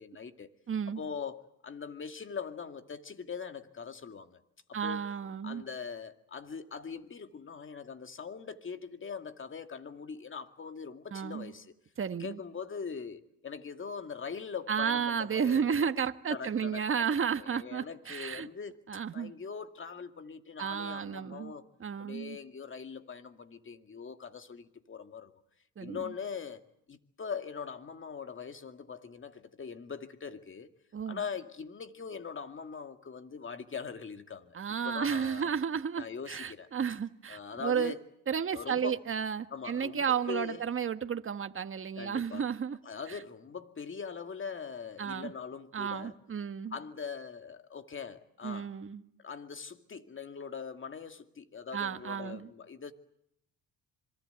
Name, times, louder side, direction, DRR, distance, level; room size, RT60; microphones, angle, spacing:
voice 1, 0.0-0.5 1.0-4.4 4.7-5.1 5.4-11.7 12.2-15.9 16.3-16.8 17.1-18.8 19.1-21.6 22.0-25.3 25.8-26.6 26.9-30.7 31.1-34.6 34.8-35.5 36.0-36.7 37.3-38.0 38.5-39.0 39.5-40.6 42.0-42.4 42.9-46.2 46.7-48.7 49.2-52.9, left 6 dB, 35° left, 2.3 m, -42 dB
voice 2, 0.7-1.0 4.7-5.6 11.1-11.5 12.0-12.4 14.7-18.5 18.9-19.3 20.6-21.5 21.8-22.4 25.8-26.0 30.9-31.2 34.5-37.9 38.3-42.8 43.1-43.2 45.0-45.3 45.7-46.8 48.4-49.0 51.7-52.5, right 7 dB, 35° right, 1.5 m, -32 dB
26.0 x 23.5 x 8.1 m
supercardioid pair, 80°, 36 cm